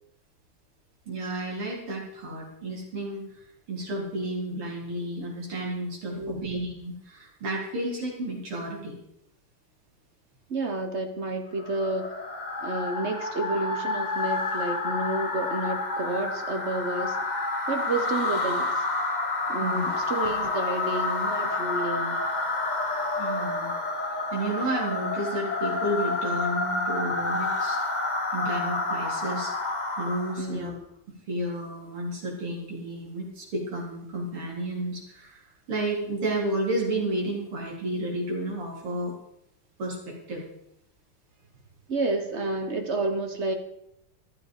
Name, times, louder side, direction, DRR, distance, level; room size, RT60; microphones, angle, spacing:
voice 1, 1.1-3.2 3.7-8.9 19.6-19.9 23.2-23.7 24.3-27.8 28.3-29.5 30.0-30.7 31.3-35.4 35.7-39.2 39.8-40.4, right 1 dB, 85° right, -3 dB, 4.9 m, -31 dB
voice 2, 6.1-6.4 10.5-12.1 12.6-17.2 17.7-18.8 19.5-22.2 30.4-30.9 41.9-43.5, right 2 dB, 40° right, 6 dB, 1.2 m, -30 dB
sound 1, 11.6-30.5, left 3 dB, 25° left, 1.1 m, -29 dB
14.0 x 12.0 x 5.0 m, 0.77 s
omnidirectional pair, 2.4 m